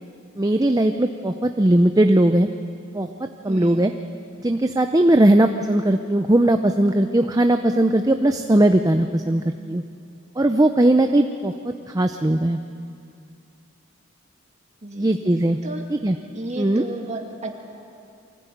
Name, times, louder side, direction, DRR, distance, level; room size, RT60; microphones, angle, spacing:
voice 1, 0.4-2.5 2.9-3.1 3.4-3.9 4.4-9.8 10.4-12.6 15.0-15.6 15.9-16.2 16.6-16.8, right 1 dB, 15° right, 6 dB, 0.6 m, -19 dB
voice 2, 3.5-3.9 14.8-15.2 15.6-15.8 16.3-17.5, right 1 dB, 30° right, 1 dB, 2.3 m, -33 dB
24.0 x 16.0 x 9.3 m, 2.5 s
head